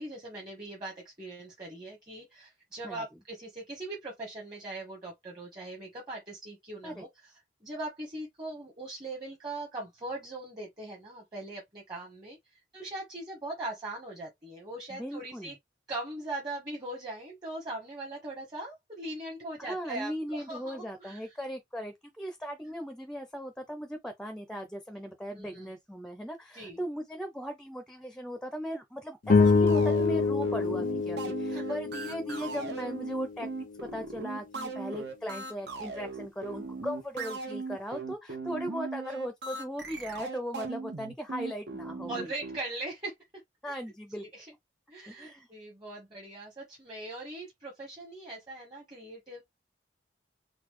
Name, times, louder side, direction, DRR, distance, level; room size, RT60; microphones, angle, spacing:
voice 1, 0.0-7.3 7.6-15.6 15.9-21.2 22.6-22.7 25.3-25.7 26.5-26.8 31.5-31.7 42.1-43.1 44.2-44.5 44.9-49.4, right 2 dB, 25° right, 1.2 m, -40 dB
voice 2, 14.9-15.5 19.6-33.5 33.8-42.3 43.6-44.3 45.1-45.5, equal, 5° left, 0.6 m, -38 dB
sound 1, 29.2-33.8, left 4 dB, 50° left, 0.5 m, -27 dB
sound 2, 29.4-42.6, right 3 dB, 70° right, 1.1 m, -38 dB
4.0 x 2.3 x 3.1 m
head